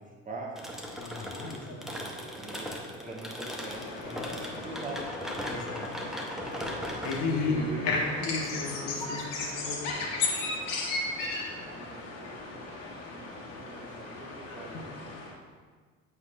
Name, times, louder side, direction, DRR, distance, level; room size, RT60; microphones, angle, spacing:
voice 1, 0.0-1.0 2.3-4.4 4.6-5.0 7.5-8.1 11.0-15.1, right 2 dB, 20° right, -1 dB, 1.2 m, -44 dB
sound 1, 0.6-9.2, equal, ahead, 0.7 m, -39 dB
voice 2, 1.0-2.1 4.0-4.4 5.5-5.9 7.0-7.6 7.8-10.1 14.5-14.8, left 4 dB, 40° left, 0 dB, 1.1 m, -35 dB
sound 2, 3.6-15.3, left 3 dB, 65° left, 1.1 m, -36 dB
8.0 x 4.8 x 2.4 m, 1.5 s
figure-of-eight pair, 55°, 39 cm